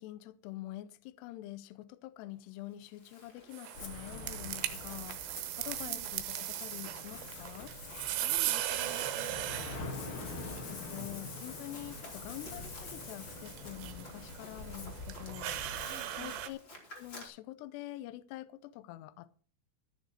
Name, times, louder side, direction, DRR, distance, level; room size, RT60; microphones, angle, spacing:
voice 1, 0.0-7.7 10.7-15.8 16.1-16.6 16.9-19.4, left 15 dB, 90° left, 2.4 m, -46 dB
Run, 2.7-17.3, left 1 dB, 30° left, 3.0 m, -54 dB
sound 1, 3.5-16.5, right 13 dB, 85° right, 3.6 m, -39 dB
Ocean, 3.7-16.3, left 3 dB, 60° left, 1.3 m, -45 dB
voice 2, 8.1-9.5 15.9-16.4, right 8 dB, 65° right, 2.1 m, -50 dB
14.0 x 6.6 x 6.4 m
omnidirectional pair, 5.7 m